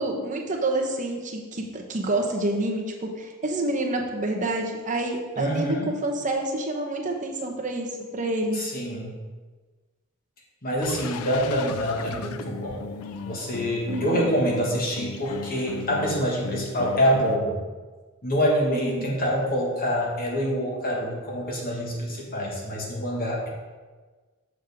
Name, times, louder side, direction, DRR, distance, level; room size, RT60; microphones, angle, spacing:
voice 1, 0.0-8.6 13.9-14.3 18.7-19.1, right 2 dB, 35° right, 2 dB, 0.9 m, -28 dB
voice 2, 5.4-5.9 8.5-9.2 10.6-12.8 13.2-17.6 18.2-23.5, equal, 40° left, -2 dB, 1.6 m, -26 dB
sound 1, 10.8-17.4, left 5 dB, 75° left, 0.4 m, -36 dB
6.4 x 6.4 x 3.5 m, 1.3 s
head